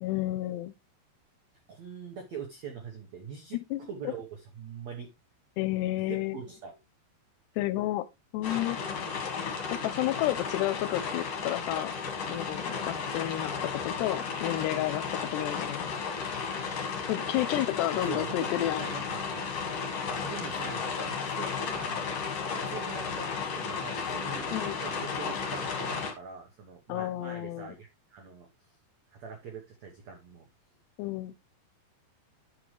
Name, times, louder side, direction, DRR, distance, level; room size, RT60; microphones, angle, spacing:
voice 1, 0.0-0.7 3.5-4.1 5.6-6.4 7.6-8.1 8.3-8.8 9.7-11.9 12.3-15.0 15.3-15.9 17.1-18.9 24.5-24.8 26.9-27.7 31.0-31.3, left 15 dB, 80° left, 2.6 m, -31 dB
voice 2, 1.7-3.6 3.9-5.1 6.1-6.8 18.0-18.5 18.8-19.5 20.2-22.1 22.5-28.7 29.1-30.5, right 6 dB, 85° right, 1.5 m, -43 dB
sound 1, 8.4-26.1, left 5 dB, 45° left, 2.1 m, -34 dB
10.5 x 6.2 x 3.2 m
omnidirectional pair, 5.1 m